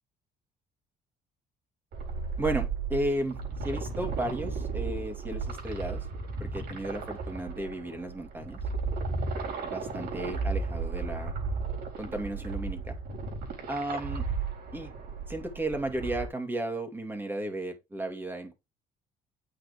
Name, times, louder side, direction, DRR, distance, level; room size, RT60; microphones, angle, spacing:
sound 1, 1.9-16.3, right 4 dB, 65° right, 4.1 m, -34 dB
voice 1, 2.4-6.1 6.4-8.6 9.6-11.3 12.0-13.0 13.7-14.2 14.7-14.9 15.3-18.5, right 1 dB, 10° right, 2.5 m, -34 dB
8.7 x 6.7 x 3.4 m
cardioid pair, 110°, 17 cm